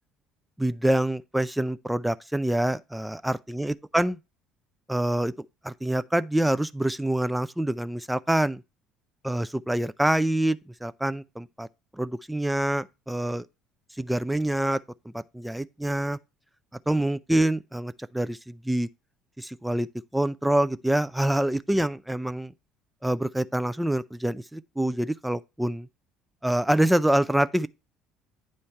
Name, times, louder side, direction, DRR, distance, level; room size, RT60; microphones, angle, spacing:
voice 1, 0.6-4.2 4.9-8.6 9.2-11.7 11.9-13.5 14.0-14.8 15.1-16.2 16.9-18.9 19.4-19.9 20.1-22.5 23.0-25.9 26.4-27.7, right 1 dB, 5° right, 0.4 m, -26 dB
9.0 x 3.2 x 5.5 m
figure-of-eight pair, 55°, 0 cm